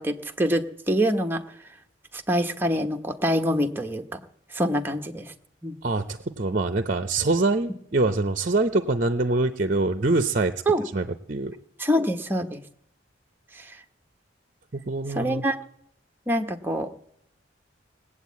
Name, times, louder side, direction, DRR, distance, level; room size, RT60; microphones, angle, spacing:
voice 1, 0.0-1.4 2.1-4.0 4.5-5.3 5.6-5.8 10.7-10.9 11.8-12.6 13.6-13.8 15.1-15.6 16.3-16.9, equal, 10° right, 4 dB, 0.9 m, -25 dB
voice 2, 5.8-10.5 10.9-11.5 14.7-15.4, right 2 dB, 45° right, 10 dB, 0.6 m, -24 dB
19.0 x 8.4 x 8.3 m, 0.73 s
head